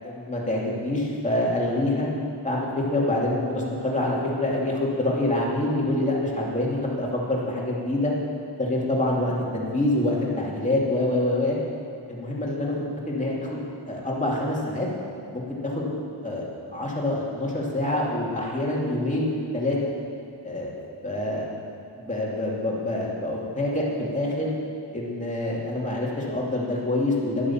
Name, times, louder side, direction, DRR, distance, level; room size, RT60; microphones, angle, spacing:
voice 1, 0.0-2.1 2.4-8.1 8.6-11.6 12.1-14.9 15.3-15.9 16.2-19.8 20.4-20.7 21.0-21.4 22.0-24.5 24.9-27.5, left 1 dB, 15° left, -4 dB, 2.5 m, -26 dB
11.0 x 10.0 x 7.2 m, 2.6 s
wide cardioid pair, 145°, 47 cm